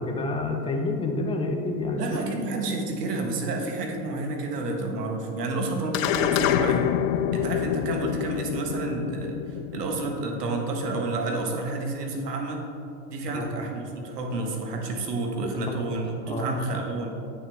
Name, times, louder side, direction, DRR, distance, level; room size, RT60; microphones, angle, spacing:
voice 1, 0.0-2.0 2.3-2.4 13.3-13.5 15.4-16.0 16.3-16.5, left 2 dB, 10° left, 2 dB, 0.6 m, -29 dB
voice 2, 2.0-6.9 7.3-12.6 13.1-17.1, right 2 dB, 90° right, 2 dB, 1.4 m, -30 dB
sound 1, 5.9-10.6, left 10 dB, 55° left, 0.5 m, -27 dB
8.7 x 6.7 x 3.4 m, 2.6 s
hypercardioid pair, 115°, 46 cm